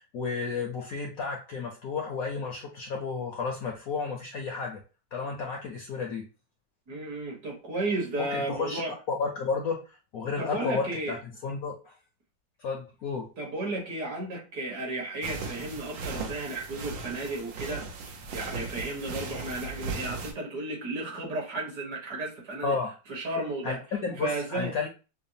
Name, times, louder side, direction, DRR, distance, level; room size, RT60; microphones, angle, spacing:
voice 1, 0.0-4.8 5.1-6.2 8.2-11.9 12.6-13.3 22.6-22.9 23.6-24.9, left 5 dB, 65° left, 0.9 m, -32 dB
voice 2, 6.9-8.9 10.4-11.2 13.4-17.8 18.3-22.7 23.1-23.8 24.2-24.7, right 2 dB, 60° right, 1.7 m, -33 dB
sound 1, 15.2-20.3, right 4 dB, 90° right, 1.5 m, -37 dB
5.9 x 2.0 x 2.6 m
omnidirectional pair, 2.0 m